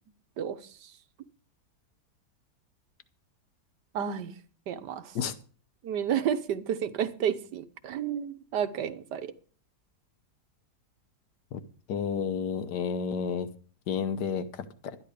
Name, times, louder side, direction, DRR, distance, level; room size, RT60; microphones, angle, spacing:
voice 1, 0.4-0.9 3.9-4.3 4.7-5.2 5.8-9.3, right 9 dB, 85° right, 1.6 m, -31 dB
voice 2, 11.9-13.5 13.9-15.0, left 6 dB, 80° left, 1.5 m, -31 dB
12.0 x 10.5 x 5.0 m
omnidirectional pair, 1.8 m